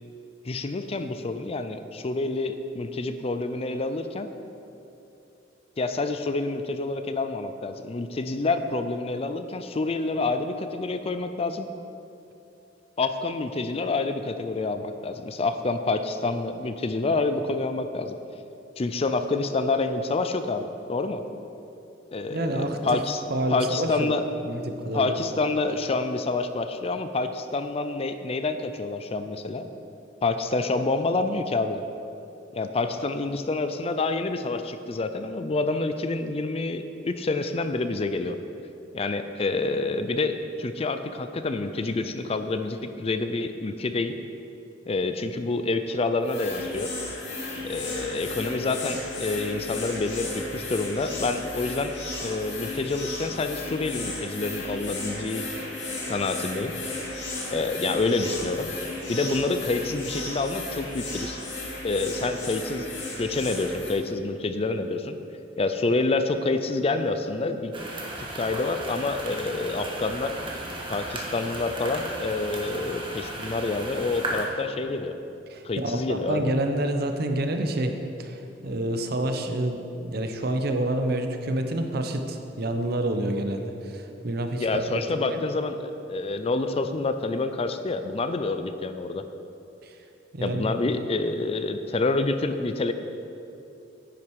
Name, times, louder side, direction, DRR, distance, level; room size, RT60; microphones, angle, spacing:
voice 1, 0.5-4.3 5.8-11.7 13.0-18.2 18.8-21.2 22.1-23.2 23.5-24.2 24.9-29.7 30.2-31.8 32.5-38.4 38.9-44.1 44.9-46.9 47.6-51.9 52.2-55.5 56.1-56.7 57.5-58.7 59.1-61.4 61.8-62.9 63.2-65.2 65.6-67.7 68.2-70.4 70.9-75.1 75.6-76.5 84.6-89.2 90.4-92.9, left 3 dB, 35° left, 9 dB, 0.4 m, -27 dB
voice 2, 22.3-22.8 23.3-24.1 24.4-25.2 75.5-85.4 89.8-89.9 90.3-90.8, right 1 dB, 60° right, 6 dB, 0.8 m, -28 dB
sound 1, 46.2-63.9, left 2 dB, 75° left, 2.6 m, -35 dB
sound 2, 67.7-74.4, right 1 dB, 30° right, 1.4 m, -35 dB
10.0 x 8.6 x 4.7 m, 2.8 s
head